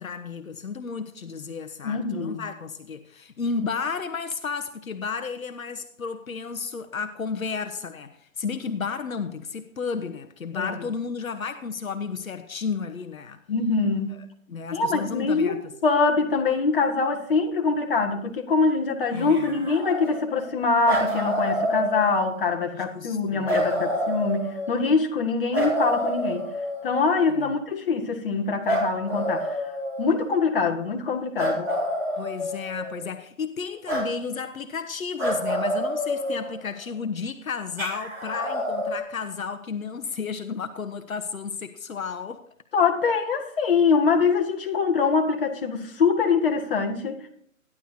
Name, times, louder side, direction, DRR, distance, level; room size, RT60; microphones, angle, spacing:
voice 1, 0.0-13.4 14.1-15.7 19.1-19.5 22.8-23.5 27.4-27.5 32.2-42.4, left 5 dB, 80° left, 1.1 m, -33 dB
voice 2, 1.8-2.4 10.5-10.7 13.5-14.2 14.7-26.5 26.8-29.6 30.0-31.7 42.7-47.2, left 4 dB, 40° left, 2.0 m, -24 dB
sound 1, 19.1-20.5 20.8-22.5 23.4-24.9 25.5-27.1 28.7-30.3 31.4-33.0 33.9-34.1 35.2-36.8 37.8-39.0, equal, 5° right, 2.3 m, -28 dB
14.5 x 11.0 x 2.8 m
hypercardioid pair, 165°, 41 cm